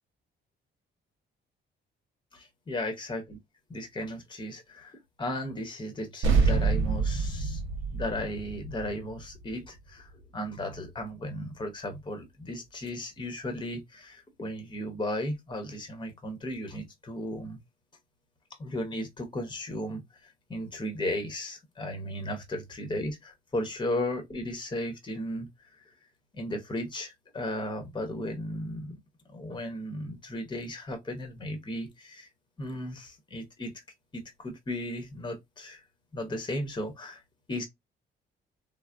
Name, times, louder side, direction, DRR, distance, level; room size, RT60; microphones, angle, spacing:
voice 1, 2.3-3.4 3.7-7.6 7.9-17.6 18.6-25.9 26.3-29.0 29.3-32.3 32.6-33.7 34.1-35.8 36.1-37.2 37.5-37.7, left 1 dB, 25° left, 0.9 m, -35 dB
sound 1, 6.2-11.0, right 4 dB, 80° right, 0.9 m, -28 dB
3.2 x 2.0 x 2.4 m
cardioid pair, 90°, 20 cm